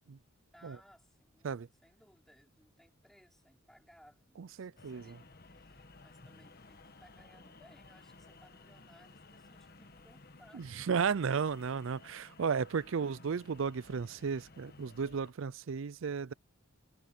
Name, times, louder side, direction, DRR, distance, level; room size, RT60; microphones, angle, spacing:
voice 1, 0.5-10.7 12.9-13.1, equal, ahead, 4.6 m, -63 dB
voice 2, 4.4-5.0 10.5-16.3, right 6 dB, 65° right, 0.4 m, -34 dB
sound 1, 4.8-15.3, left 3 dB, 45° left, 1.3 m, -57 dB
head